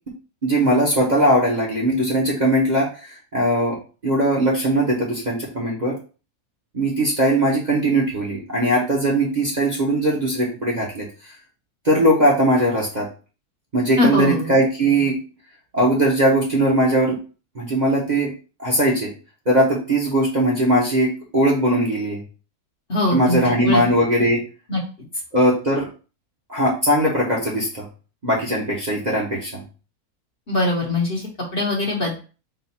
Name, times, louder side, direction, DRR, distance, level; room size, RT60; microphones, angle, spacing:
voice 1, 0.4-3.8 4.0-6.0 6.7-11.3 11.8-13.1 13.7-15.2 15.7-17.2 17.5-18.3 18.6-19.1 19.5-22.2 23.1-24.4 25.3-25.9 26.5-27.9 28.2-29.6, right 1 dB, 35° right, -4 dB, 0.9 m, -20 dB
voice 2, 14.0-14.5 22.9-23.4 23.6-23.8 24.7-24.8 30.5-31.2 31.5-32.2, left 2 dB, 45° left, -1 dB, 1.0 m, -21 dB
3.9 x 2.4 x 4.2 m, 0.35 s
omnidirectional pair, 1.6 m